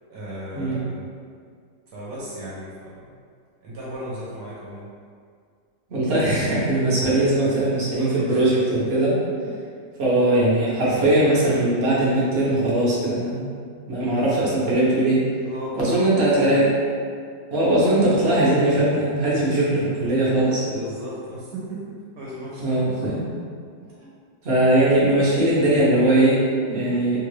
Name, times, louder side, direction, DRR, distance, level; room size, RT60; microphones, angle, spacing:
voice 1, 0.1-1.1 1.9-3.1 3.6-4.9 8.0-8.5 9.4-9.6 15.4-16.6 20.7-23.1 24.0-24.1, equal, 65° right, -7 dB, 1.1 m, -36 dB
voice 2, 5.9-9.2 10.0-13.6 13.9-15.3 15.8-16.7 17.5-20.7 22.6-23.3 24.4-27.2, right 1 dB, 50° right, -7 dB, 0.8 m, -20 dB
3.0 x 2.4 x 3.1 m, 2.1 s
omnidirectional pair, 1.9 m